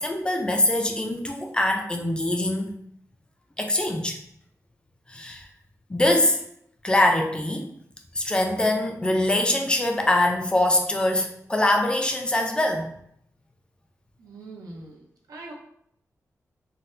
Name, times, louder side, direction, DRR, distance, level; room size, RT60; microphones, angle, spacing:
voice 1, 0.0-2.7 3.6-4.2 5.1-5.5 5.9-6.4 6.8-7.7 8.2-12.9, left 1 dB, 15° left, 3 dB, 0.3 m, -23 dB
voice 2, 14.2-15.5, right 2 dB, 85° right, -1 dB, 0.7 m, -42 dB
3.9 x 2.1 x 2.6 m, 0.71 s
wide cardioid pair, 180°, 6 cm